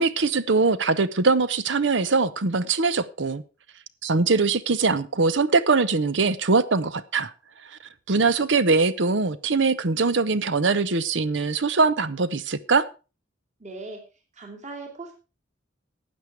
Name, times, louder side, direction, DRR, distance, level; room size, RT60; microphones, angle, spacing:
voice 1, 0.0-3.4 4.0-7.3 7.7-7.8 8.1-12.9, right 4 dB, 65° right, 0.8 m, -22 dB
voice 2, 13.6-14.0 14.3-15.1, right 3 dB, 40° right, 2.8 m, -39 dB
12.5 x 8.6 x 4.7 m
head